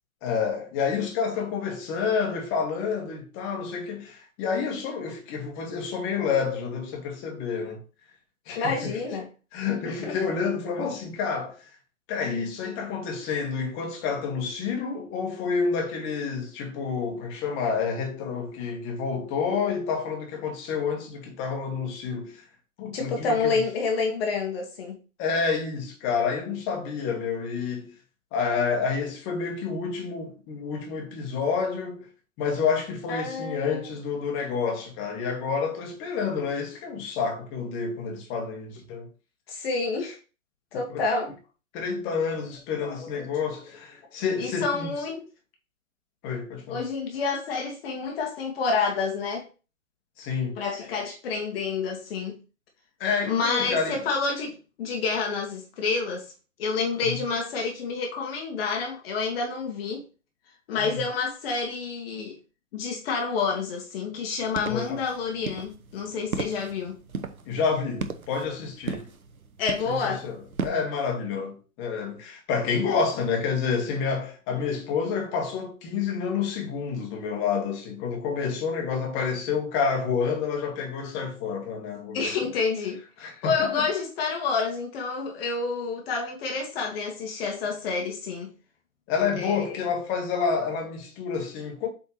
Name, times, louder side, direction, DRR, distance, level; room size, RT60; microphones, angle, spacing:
voice 1, 0.2-7.8 8.5-9.0 9.5-11.7 12.1-22.4 22.8-23.6 25.2-27.9 28.3-32.1 32.4-39.1 40.9-41.0 41.7-44.9 46.2-46.8 50.2-50.6 53.0-54.0 57.0-57.2 60.8-61.0 64.7-65.0 67.5-69.1 69.9-70.4 70.6-82.4 83.2-83.9 89.1-91.9, left 5 dB, 30° left, 1.8 m, -29 dB
voice 2, 8.5-9.3 9.8-10.2 22.9-24.9 33.1-33.9 39.5-40.2 40.7-41.3 42.8-43.1 44.4-45.2 46.7-49.5 50.6-52.4 53.2-56.2 56.6-60.0 60.7-62.4 62.7-66.9 69.6-70.2 82.1-88.5 89.4-89.7, left 4 dB, 45° left, 1.6 m, -28 dB
sound 1, 64.4-70.8, right 5 dB, 80° right, 1.0 m, -36 dB
8.0 x 4.3 x 3.1 m
figure-of-eight pair, 120°, 42 cm